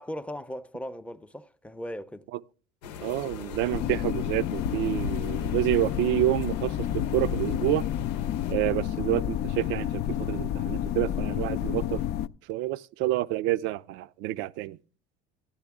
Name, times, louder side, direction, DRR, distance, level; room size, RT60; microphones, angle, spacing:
voice 1, 0.0-2.3, equal, 5° left, 0.6 m, -38 dB
sound 1, 2.8-8.5, left 5 dB, 90° left, 0.8 m, -38 dB
voice 2, 3.0-7.8 8.5-12.0 12.5-14.8, right 15 dB, 65° right, 0.5 m, -28 dB
sound 2, 3.7-12.3, left 11 dB, 55° left, 0.5 m, -30 dB
14.0 x 10.0 x 3.6 m
supercardioid pair, 90°, 21 cm